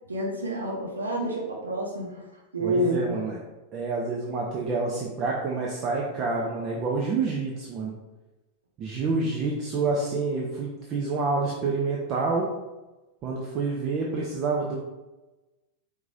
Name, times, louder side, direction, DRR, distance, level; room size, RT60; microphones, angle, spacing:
voice 1, 0.1-2.3 2.5-3.2, right 1 dB, 75° right, -1 dB, 0.8 m, -28 dB
voice 2, 2.6-3.4 3.7-7.9 8.8-12.5 13.2-14.8, right 4 dB, 35° right, -2 dB, 0.7 m, -28 dB
4.9 x 3.6 x 2.7 m, 1.1 s
figure-of-eight pair, 90°, 0 cm